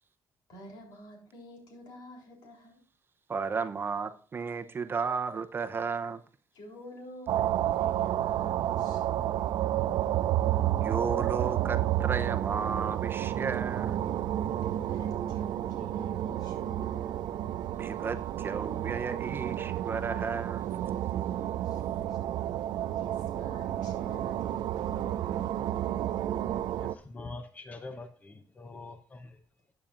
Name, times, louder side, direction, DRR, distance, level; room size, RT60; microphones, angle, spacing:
voice 1, 0.5-2.8 6.5-9.4 14.5-17.2 21.6-22.4 22.9-25.7, left 1 dB, 75° left, 3.6 m, -50 dB
voice 2, 3.3-6.2 10.8-14.0 17.7-20.7, right 5 dB, 30° right, 0.7 m, -33 dB
sound 1, 7.3-26.9, right 12 dB, 80° right, 0.4 m, -31 dB
voice 3, 26.5-29.4, left 3 dB, 20° left, 0.7 m, -44 dB
14.0 x 8.8 x 2.5 m
cardioid pair, 155°, 7 cm